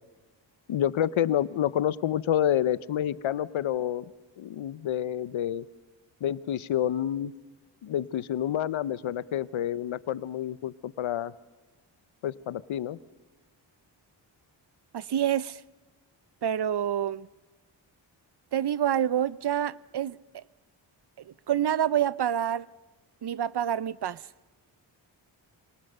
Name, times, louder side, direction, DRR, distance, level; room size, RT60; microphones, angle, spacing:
voice 1, 0.7-4.1 4.4-5.7 6.2-7.3 7.8-11.3 12.2-13.0, left 10 dB, 85° left, 1.0 m, -28 dB
voice 2, 14.9-15.6 16.4-17.3 18.5-20.4 21.3-22.7 23.2-24.2, right 10 dB, 60° right, 0.7 m, -27 dB
28.5 x 24.5 x 6.8 m
cardioid pair, 70°, 46 cm